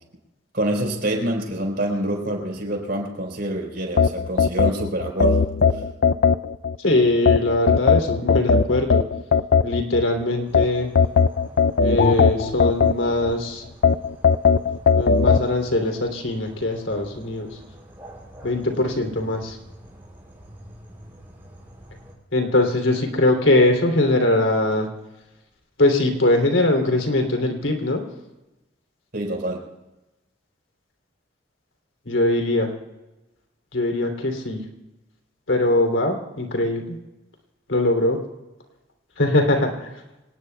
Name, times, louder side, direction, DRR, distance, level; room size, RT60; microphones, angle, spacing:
voice 1, 0.5-5.4 5.7-5.8 29.1-29.6, right 1 dB, 55° right, 2 dB, 4.4 m, -26 dB
sound 1, 4.0-6.8 7.3-10.0 10.5-13.3 13.8-15.5, left 5 dB, 55° left, 0.5 m, -18 dB
voice 2, 6.8-9.0 9.6-10.9 11.8-13.6 14.9-17.5 18.4-19.6 22.3-24.9 25.8-28.0 32.0-32.7 33.7-34.6 35.5-37.0 37.7-38.2 39.2-39.9, left 2 dB, 80° left, 4 dB, 3.1 m, -21 dB
sound 2, 10.4-22.1, equal, 10° right, 7.2 m, -46 dB
26.0 x 19.0 x 2.3 m, 1.0 s
head